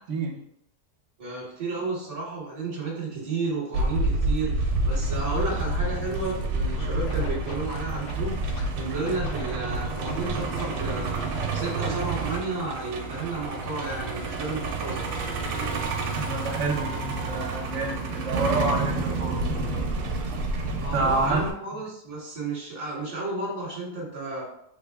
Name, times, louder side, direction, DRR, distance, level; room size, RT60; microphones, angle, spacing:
voice 1, 1.2-11.3 11.5-15.1 20.7-24.4, right 3 dB, 25° right, -6 dB, 1.3 m, -32 dB
Truck, 3.7-21.5, right 3 dB, 75° right, 1.1 m, -29 dB
Scratching (performance technique), 6.7-8.6 9.1-10.7 11.3-12.0, left 5 dB, 75° left, 0.7 m, -41 dB
voice 2, 16.1-19.9 20.7-21.4, right 2 dB, 55° right, -1 dB, 1.0 m, -28 dB
3.3 x 2.1 x 3.5 m, 0.75 s
omnidirectional pair, 1.7 m